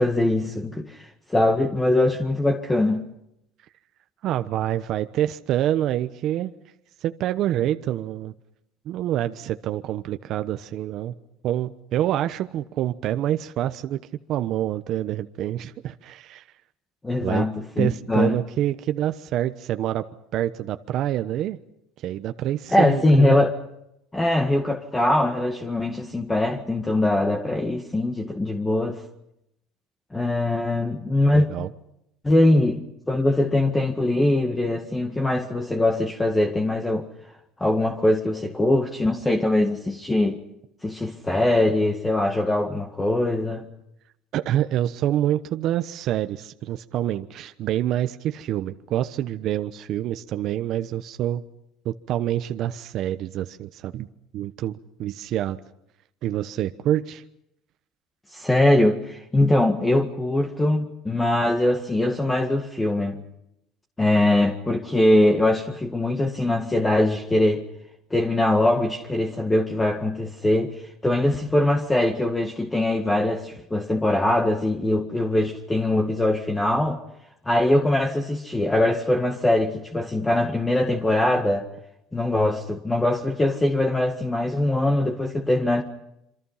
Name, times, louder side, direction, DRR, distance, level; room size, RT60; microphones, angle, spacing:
voice 1, 0.0-3.1 17.0-18.4 22.7-23.5 24.1-29.0 30.1-31.5 32.2-37.1 37.6-40.4 40.8-43.7 58.3-63.3 64.0-67.6 68.1-77.0 77.5-81.7 82.1-85.8, left 1 dB, 10° left, 1.9 m, -22 dB
voice 2, 4.2-6.5 7.0-8.3 8.8-11.1 11.4-14.0 14.3-16.5 17.2-17.5 17.8-20.0 20.3-21.6 22.0-23.4 31.3-31.7 44.3-51.4 51.8-54.1 54.3-55.6 56.2-57.2, right 12 dB, 55° right, 1.0 m, -26 dB
27.5 x 26.0 x 5.8 m
cardioid pair, 130°, 0 cm